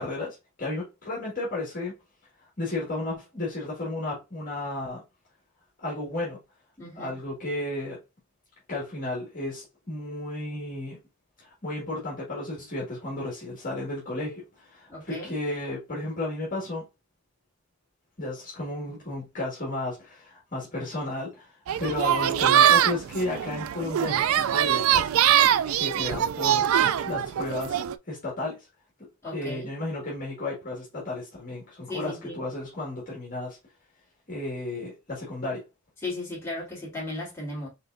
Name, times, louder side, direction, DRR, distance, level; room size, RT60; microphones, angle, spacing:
voice 1, 0.0-1.9 2.6-5.0 5.8-6.4 6.9-8.0 8.7-11.0 11.4-16.8 18.2-21.5 21.8-25.1 25.7-26.7 27.0-27.8 28.1-28.7 29.3-33.6 34.3-35.6, left 2 dB, 40° left, 1.9 m, -33 dB
voice 2, 6.8-7.2 14.9-15.3 29.2-29.7 31.9-32.4 36.0-37.7, left 2 dB, 10° left, 3.3 m, -35 dB
sound 1, 21.7-27.9, right 10 dB, 80° right, 0.3 m, -23 dB
5.8 x 3.5 x 2.6 m
head